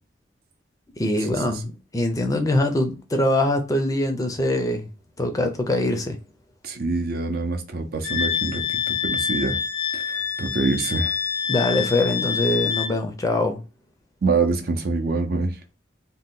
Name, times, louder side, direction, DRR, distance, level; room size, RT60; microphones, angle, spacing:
voice 1, 1.0-4.9 5.2-6.2 11.5-13.6, left 1 dB, 20° left, 0.4 m, -23 dB
voice 2, 6.6-9.6 9.9-11.2 14.2-15.6, right 3 dB, 60° right, 0.6 m, -25 dB
Wind instrument woodwind instrument, 8.0-12.9, left 7 dB, 80° left, 0.7 m, -26 dB
2.7 x 2.2 x 3.5 m
head